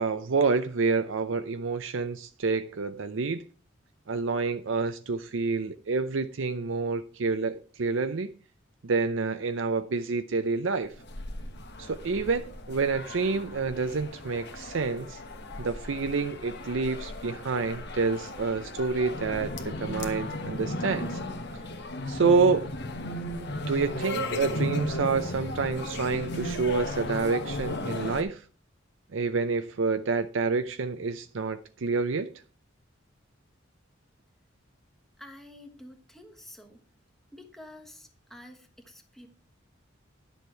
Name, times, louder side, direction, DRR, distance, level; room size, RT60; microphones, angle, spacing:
voice 1, 0.0-3.4 4.1-8.3 8.8-10.9 11.8-15.2 15.6-21.2 22.1-22.7 23.5-28.4 29.1-32.3, right 4 dB, 70° right, 0.6 m, -28 dB
sound 1, 10.9-28.2, left 1 dB, 60° left, 1.3 m, -35 dB
voice 2, 35.2-36.8 37.3-39.3, left 1 dB, ahead, 1.3 m, -49 dB
11.0 x 7.1 x 4.5 m
head